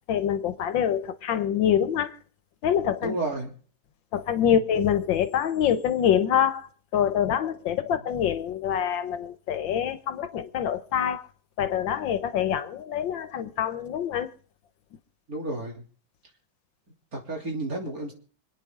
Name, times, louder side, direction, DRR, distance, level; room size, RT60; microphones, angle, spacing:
voice 1, 0.1-2.2 2.6-3.1 4.1-11.3 11.6-14.3, left 9 dB, 85° left, 1.8 m, -25 dB
voice 2, 3.0-3.5 4.4-4.5 15.3-15.8 17.1-18.1, right 2 dB, 50° right, 3.5 m, -31 dB
27.0 x 9.3 x 3.7 m
omnidirectional pair, 2.0 m